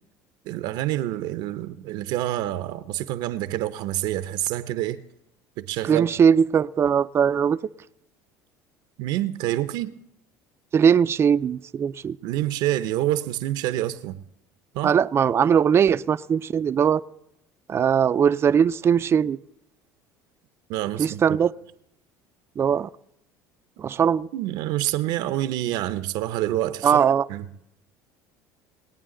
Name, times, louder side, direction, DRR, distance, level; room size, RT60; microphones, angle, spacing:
voice 1, 0.4-5.0 5.6-6.1 9.0-9.9 12.2-14.2 14.7-14.9 20.7-21.4 24.3-27.0 27.3-27.5, right 14 dB, 70° right, 0.6 m, -27 dB
voice 2, 5.8-7.6 10.7-12.2 14.8-17.0 17.7-19.4 21.0-21.5 22.6-22.9 23.8-24.3 26.8-27.3, right 7 dB, 30° right, 0.4 m, -20 dB
20.0 x 8.8 x 3.8 m
supercardioid pair, 95°, 8 cm